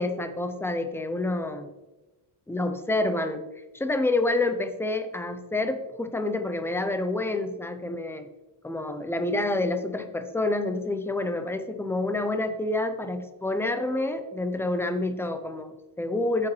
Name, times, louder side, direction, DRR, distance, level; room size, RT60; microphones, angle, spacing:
voice 1, 0.0-1.7 2.5-3.4 3.7-8.3 8.6-16.5, left 2 dB, 5° left, 8 dB, 0.6 m, -28 dB
8.7 x 7.1 x 3.2 m, 1.1 s
wide cardioid pair, 145°, 43 cm